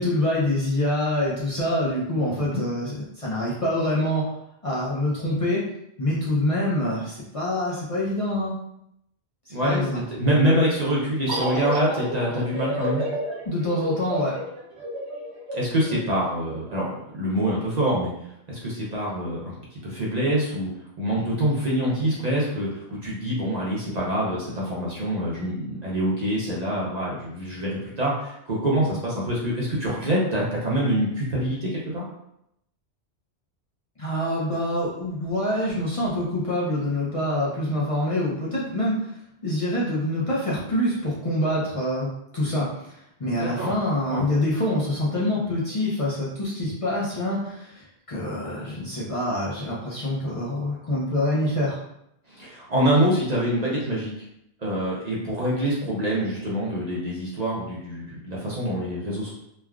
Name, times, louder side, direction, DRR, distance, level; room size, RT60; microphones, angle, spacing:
voice 1, 0.0-4.3 4.6-5.6 6.0-8.5 9.6-10.0 13.5-14.3 34.0-39.2 39.4-51.8, left 1 dB, 40° left, -7 dB, 0.6 m, -26 dB
voice 2, 2.3-2.6 9.5-9.8 10.2-13.0 15.5-18.1 18.5-20.7 21.0-32.0 43.3-43.7 44.1-44.3 52.3-54.2 54.6-59.3, right 1 dB, 45° right, -5 dB, 0.7 m, -25 dB
sound 1, 11.3-16.6, equal, 85° right, 1.1 m, -30 dB
3.2 x 2.2 x 2.3 m, 0.78 s
omnidirectional pair, 1.1 m